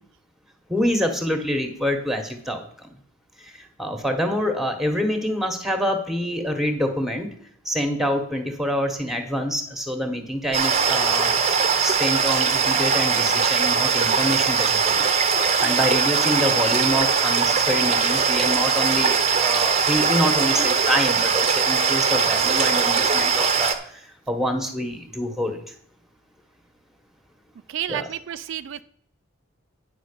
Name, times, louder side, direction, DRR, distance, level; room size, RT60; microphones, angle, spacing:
voice 1, 0.7-2.9 3.4-7.3 7.6-11.5 11.8-15.1 15.6-25.7 27.9-28.1, equal, ahead, 6 dB, 1.2 m, -26 dB
sound 1, 10.5-23.7, right 5 dB, 30° right, 0.8 m, -21 dB
voice 2, 27.7-28.8, right 10 dB, 60° right, 12 dB, 0.3 m, -31 dB
9.5 x 5.2 x 6.7 m, 0.68 s
head